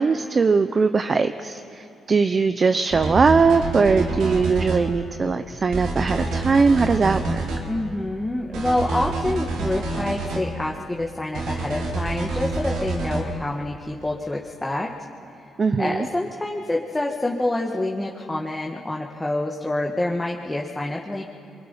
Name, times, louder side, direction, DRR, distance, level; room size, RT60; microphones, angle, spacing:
voice 1, 0.0-7.5 15.6-16.1, right 4 dB, 35° right, 10 dB, 0.8 m, -20 dB
sound 1, 2.9-4.8 5.7-7.6 8.5-10.4 11.3-13.2, right 3 dB, 85° right, 4.0 m, -27 dB
voice 2, 7.7-14.9 15.8-21.2, left 1 dB, 10° left, 0 dB, 1.8 m, -27 dB
27.5 x 23.5 x 5.7 m, 2.9 s
cardioid pair, 90°, 0 cm